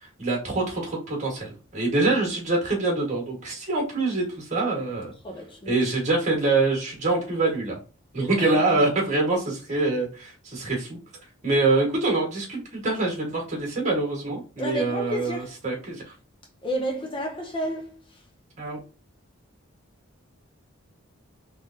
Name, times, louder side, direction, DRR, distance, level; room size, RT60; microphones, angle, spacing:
voice 1, 0.2-5.1 5.7-7.8 8.1-11.0 11.4-16.1 18.6-18.8, right 3 dB, 35° right, 1.7 m, -25 dB
voice 2, 5.2-5.7 8.4-8.8 14.6-15.5 16.6-18.2, equal, 25° left, 0.5 m, -31 dB
3.7 x 3.3 x 2.7 m
head